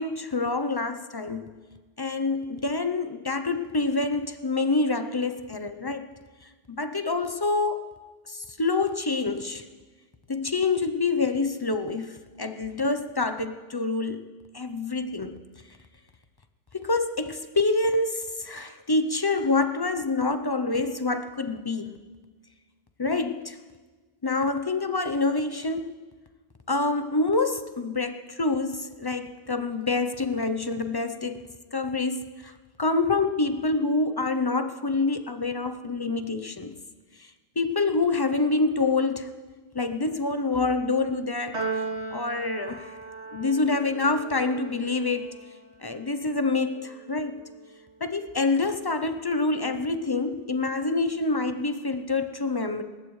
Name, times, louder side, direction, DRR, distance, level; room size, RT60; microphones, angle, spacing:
voice 1, 0.0-1.5 2.0-6.1 6.7-7.9 8.3-9.6 10.3-14.3 14.5-15.4 16.7-22.0 23.0-23.6 24.2-26.0 26.7-31.4 31.7-32.5 32.8-36.7 37.2-37.3 37.6-39.3 39.7-42.9 43.3-45.3 45.8-47.5 48.0-52.8, left 3 dB, 30° left, 8 dB, 0.5 m, -27 dB
Piano, 41.5-48.0, right 4 dB, 70° right, 1.7 m, -38 dB
28.0 x 14.0 x 3.2 m, 1.4 s
omnidirectional pair, 1.2 m